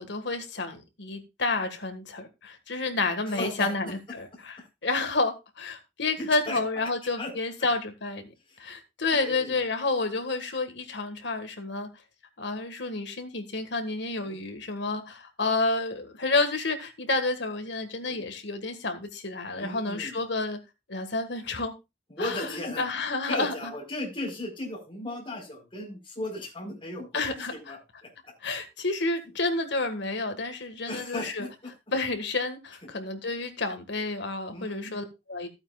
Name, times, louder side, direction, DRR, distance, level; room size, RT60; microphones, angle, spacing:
voice 1, 0.0-4.6 4.8-8.3 8.6-11.9 12.4-20.6 20.9-21.7 22.2-22.5 22.8-23.7 27.1-27.7 28.4-31.5 31.9-35.5, left 3 dB, 65° left, 7 dB, 1.8 m, -30 dB
voice 2, 3.3-3.9 6.2-6.6 7.2-7.3 7.6-7.7 8.5-8.6 9.1-9.6 14.3-14.4 18.1-18.2 19.5-20.2 22.1-22.8 23.3-27.4 27.6-28.3 30.9-31.7 34.5-35.0, left 1 dB, 30° left, 0 dB, 4.4 m, -36 dB
15.0 x 8.7 x 2.4 m, 0.24 s
head